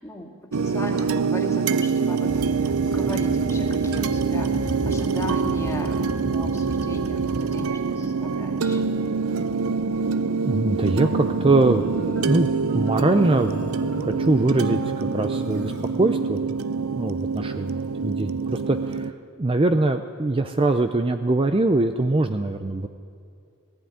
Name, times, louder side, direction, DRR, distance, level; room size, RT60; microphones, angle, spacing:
voice 1, 0.0-8.9, left 1 dB, 15° left, 1 dB, 2.3 m, -37 dB
sound 1, 0.5-19.1, right 5 dB, 75° right, 0.7 m, -25 dB
sound 2, 2.3-7.5, equal, ahead, 2.7 m, -35 dB
voice 2, 10.5-11.9 12.2-16.5 17.0-17.8 18.0-19.1 19.4-22.9, right 2 dB, 25° right, 8 dB, 0.5 m, -22 dB
Marimba xylophone, 11.5-16.6, right 1 dB, 50° right, 4.2 m, -36 dB
18.0 x 15.0 x 9.5 m, 2.4 s
head